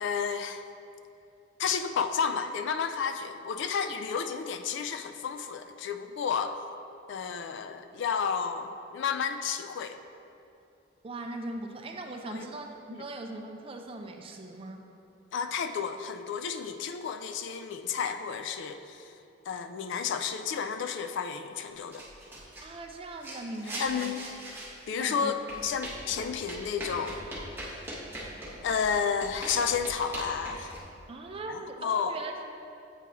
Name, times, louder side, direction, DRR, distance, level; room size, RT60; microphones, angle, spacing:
voice 1, 0.0-0.6 1.6-6.6 7.1-10.0 12.3-12.5 12.9-13.0 15.3-19.1 19.5-22.0 23.8-24.3 24.9-27.3 27.6-27.8 28.6-30.8 31.5-32.2, left 6 dB, 65° left, 9 dB, 0.3 m, -31 dB
voice 2, 11.0-14.8 22.6-24.1 25.0-25.3 26.1-26.2 31.1-32.4, right 2 dB, 30° right, 4 dB, 0.4 m, -40 dB
sound 1, 21.9-22.7 23.2-24.8 25.3-30.8, right 1 dB, 10° right, 1.1 m, -41 dB
8.2 x 4.7 x 2.9 m, 2.7 s
head